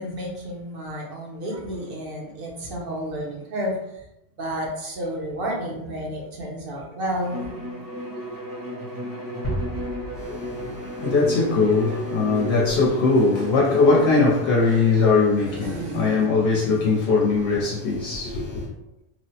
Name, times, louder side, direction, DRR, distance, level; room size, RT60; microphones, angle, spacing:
voice 1, 0.0-4.0 4.4-7.9 11.0-11.3 15.0-16.8 18.5-18.6, equal, 60° right, 0.8 m, -32 dB
Bowed string instrument, 7.2-14.6, equal, 20° right, 0.7 m, -33 dB
sound 1, 9.4-11.9, equal, 40° left, 0.7 m, -34 dB
voice 2, 10.2-18.7, left 4 dB, 70° left, 0.8 m, -21 dB
3.0 x 2.0 x 2.7 m
omnidirectional pair, 1.1 m